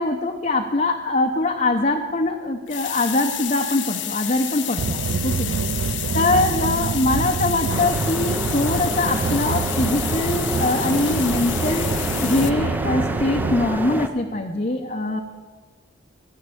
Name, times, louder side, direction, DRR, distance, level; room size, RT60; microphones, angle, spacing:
voice 1, 0.0-5.6 6.1-11.9 12.2-15.2, left 2 dB, 40° left, 2 dB, 0.8 m, -23 dB
sound 1, 2.7-12.5, left 12 dB, 70° left, 0.9 m, -30 dB
sound 2, 4.8-13.7, right 5 dB, 85° right, 0.4 m, -27 dB
sound 3, 7.7-14.1, right 1 dB, 10° right, 0.6 m, -28 dB
15.5 x 7.5 x 8.9 m, 1.5 s
head